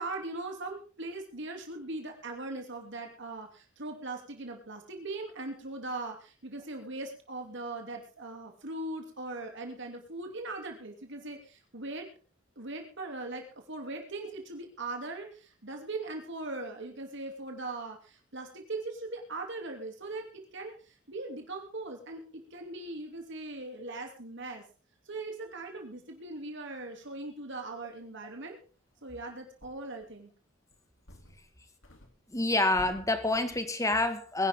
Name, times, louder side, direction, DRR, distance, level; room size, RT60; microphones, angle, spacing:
voice 1, 0.0-12.1 12.6-24.6 25.1-28.6 29.0-30.3, right 2 dB, 65° right, 3 dB, 3.0 m, -40 dB
sound 1, 29.0-29.1 29.6-30.2 30.7-31.6 31.8-33.8, left 1 dB, 90° left, 3.3 m, -52 dB
voice 2, 32.3-34.5, left 2 dB, 15° left, 8 dB, 1.9 m, -27 dB
22.0 x 11.0 x 3.8 m, 0.36 s
head